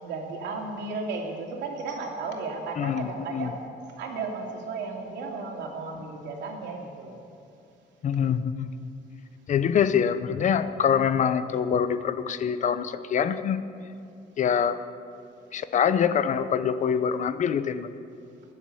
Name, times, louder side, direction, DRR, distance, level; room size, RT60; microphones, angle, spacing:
voice 1, 0.0-3.5 4.0-7.2, right 3 dB, 90° right, 0 dB, 2.8 m, -34 dB
voice 2, 2.8-3.5 8.0-8.7 9.5-13.6 14.4-14.8 15.5-17.9, left 7 dB, 45° left, 12 dB, 0.7 m, -25 dB
16.5 x 11.0 x 7.0 m, 2.5 s
cardioid pair, 145°, 18 cm